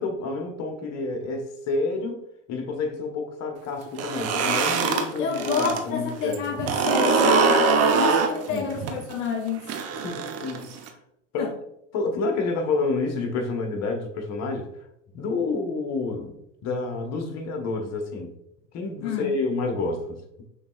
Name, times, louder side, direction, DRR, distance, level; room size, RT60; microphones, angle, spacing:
voice 1, 0.0-2.2 2.5-6.6 8.5-8.7 9.9-10.7 11.3-11.5 11.9-14.7 15.1-16.4 16.6-18.3 18.7-20.2, left 3 dB, 45° left, 4 dB, 1.1 m, -29 dB
sound 1, 3.9-5.8 6.1-10.9, right 4 dB, 40° right, 0.8 m, -23 dB
voice 2, 4.9-9.7 11.4-11.5 19.0-19.3, left 6 dB, 70° left, 2 dB, 0.8 m, -29 dB
6.4 x 3.1 x 2.3 m, 0.80 s
hypercardioid pair, 75°, 37 cm